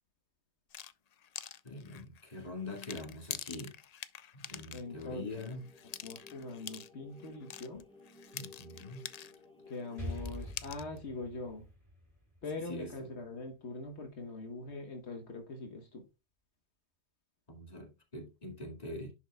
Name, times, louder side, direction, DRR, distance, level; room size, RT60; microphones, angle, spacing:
sound 1, 0.7-9.4 9.7-11.0, left 9 dB, 55° left, 0.4 m, -46 dB
voice 1, 1.6-3.8 4.3-5.6 8.3-9.0 12.6-13.1 17.5-19.1, left 2 dB, 35° left, 2.1 m, -43 dB
voice 2, 4.7-5.5 6.0-7.9 9.7-11.7 12.4-16.1, left 3 dB, 70° left, 1.5 m, -43 dB
sound 2, 4.8-10.5, left 3 dB, 5° left, 1.4 m, -57 dB
Explosion, 10.0-13.7, left 1 dB, 30° right, 3.4 m, -45 dB
10.5 x 5.9 x 2.3 m
omnidirectional pair, 1.2 m